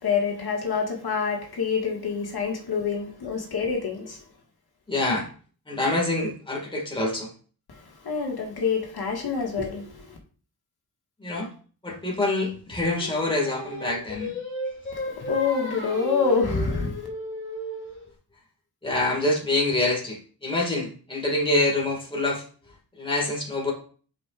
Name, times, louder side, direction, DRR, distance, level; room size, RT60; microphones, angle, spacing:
voice 1, 0.0-4.2 7.8-10.2 15.3-16.9, left 5 dB, 70° left, 1.7 m, -26 dB
voice 2, 4.9-5.3 5.7-7.3 11.2-11.5 11.8-14.4 18.8-22.4 23.0-23.7, left 2 dB, 15° left, 1.8 m, -26 dB
Singing, 12.9-18.1, equal, 30° left, 1.8 m, -34 dB
9.8 x 5.2 x 2.4 m
wide cardioid pair, 170°, 40 cm